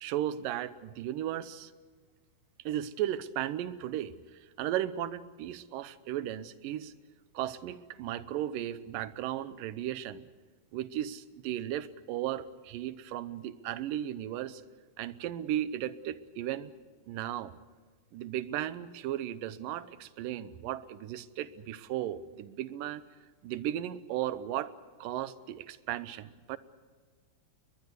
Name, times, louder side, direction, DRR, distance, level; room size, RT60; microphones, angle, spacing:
voice 1, 0.0-1.7 2.7-4.2 4.6-6.9 7.3-10.2 10.7-14.6 15.0-16.7 17.1-17.5 18.1-23.0 23.4-24.7 25.0-26.6, right 12 dB, 90° right, 16 dB, 2.5 m, -35 dB
21.5 x 21.5 x 8.1 m, 1.5 s
omnidirectional pair, 3.8 m